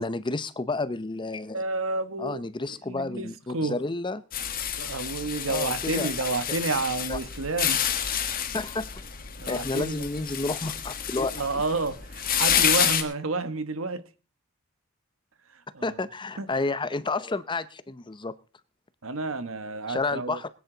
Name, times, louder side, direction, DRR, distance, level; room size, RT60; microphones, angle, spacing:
voice 1, 0.0-1.6 2.2-4.2 5.5-6.6 7.1-7.2 8.5-9.0 9.5-11.4 15.8-18.3 19.9-20.5, left 3 dB, 20° left, 0.6 m, -31 dB
voice 2, 1.5-2.4 2.7-3.8 4.8-7.8 9.4-10.1 11.3-14.1 15.5-16.0 16.4-16.5 19.0-20.4, right 3 dB, 75° right, 1.2 m, -30 dB
sound 1, 4.3-13.0, left 9 dB, 45° left, 1.6 m, -29 dB
21.0 x 9.5 x 3.9 m
head